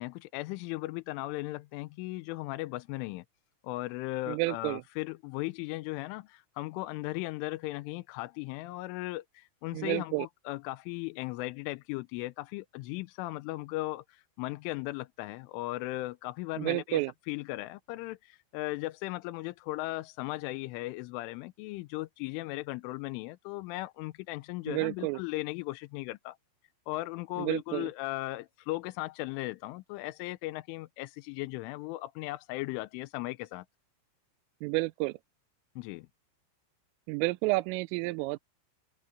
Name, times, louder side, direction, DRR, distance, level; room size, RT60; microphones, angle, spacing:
voice 1, 0.0-3.2 3.6-17.0 17.3-26.4 26.9-33.7 35.8-36.1, left 19 dB, 80° left, 3.1 m, -37 dB
voice 2, 4.3-4.8 9.7-10.3 16.6-17.1 24.7-25.2 27.4-27.9 34.6-35.2 37.1-38.4, right 22 dB, 85° right, 3.2 m, -30 dB
open air
omnidirectional pair, 5.8 m